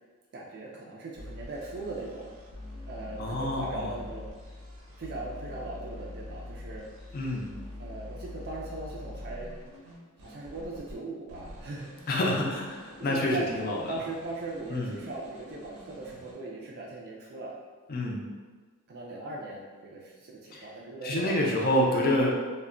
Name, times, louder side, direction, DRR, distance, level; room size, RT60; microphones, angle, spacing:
voice 1, 0.3-2.3 2.9-4.3 5.0-6.9 7.8-9.5 10.2-12.1 12.4-12.5 13.0-17.5 18.9-21.7, right 2 dB, 45° right, -4 dB, 0.4 m, -39 dB
sound 1, 1.2-11.0 11.3-16.3, left 1 dB, 85° right, 0.7 m, -45 dB
voice 2, 3.2-3.9 7.1-7.5 12.1-12.6 13.0-13.9 14.7-14.9 17.9-18.3 20.5-20.7 21.0-22.3, left 1 dB, 45° left, -2 dB, 0.5 m, -27 dB
2.1 x 2.1 x 3.6 m, 1.4 s
head